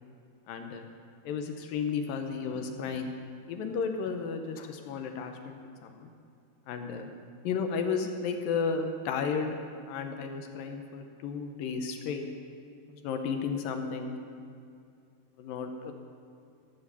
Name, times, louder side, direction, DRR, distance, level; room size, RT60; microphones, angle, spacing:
voice 1, 0.5-0.9 1.3-3.1 3.5-6.1 6.7-7.1 7.4-9.6 9.9-12.2 12.9-14.2 15.4-15.9, left 5 dB, 75° left, 5 dB, 2.2 m, -33 dB
14.5 x 7.5 x 6.9 m, 2.5 s
omnidirectional pair, 4.7 m